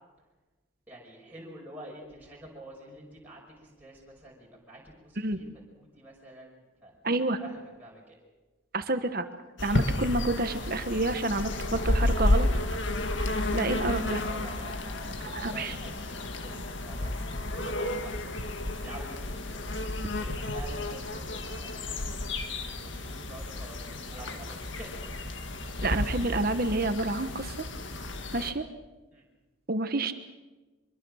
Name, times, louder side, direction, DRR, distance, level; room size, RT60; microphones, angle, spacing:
voice 1, 0.9-5.5 5.7-6.9 7.4-8.2 13.9-19.6 20.2-21.8 22.7-24.9 29.1-29.2, right 1 dB, 10° right, -4 dB, 5.6 m, -48 dB
voice 2, 7.0-7.4 8.7-9.2 9.6-12.5 13.5-14.2 15.3-15.7 25.8-27.6 28.3-28.6 29.7-30.1, right 2 dB, 45° right, 9 dB, 1.3 m, -29 dB
sound 1, 9.6-28.5, left 1 dB, 65° left, 1.8 m, -32 dB
24.5 x 22.5 x 6.5 m, 1.2 s
head